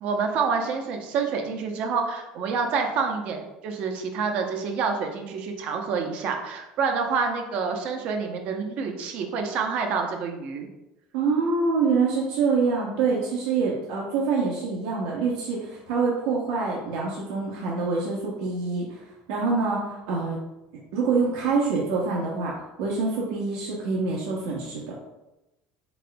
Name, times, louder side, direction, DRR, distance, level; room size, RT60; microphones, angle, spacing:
voice 1, 0.0-10.7, right 5 dB, 50° right, 4 dB, 0.6 m, -27 dB
voice 2, 11.1-20.4 20.9-24.9, right 4 dB, 85° right, -4 dB, 0.8 m, -26 dB
4.3 x 4.2 x 2.2 m, 0.96 s
cardioid pair, 155°, 3 cm